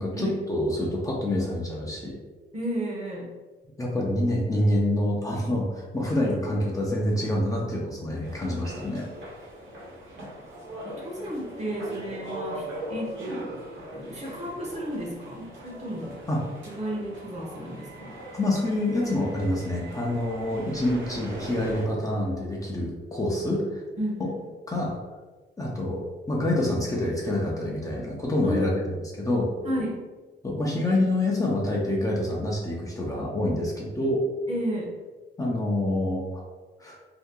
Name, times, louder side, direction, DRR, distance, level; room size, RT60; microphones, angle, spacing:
voice 1, 0.0-2.2 3.8-9.1 16.3-16.4 18.3-23.8 24.2-24.3 24.7-25.0 25.6-29.5 30.4-34.2 35.4-36.4 36.8-37.0, left 1 dB, 15° left, -3 dB, 0.7 m, -27 dB
voice 2, 2.5-3.3 10.8-13.4 13.9-16.2 16.7-18.1 24.0-24.3 28.4-28.7 29.6-30.0 34.5-34.9, right 1 dB, 35° right, -2 dB, 1.0 m, -33 dB
sound 1, 8.2-21.8, right 1 dB, 70° right, 1.2 m, -40 dB
2.8 x 2.2 x 3.6 m, 1.3 s
cardioid pair, 90°, 20 cm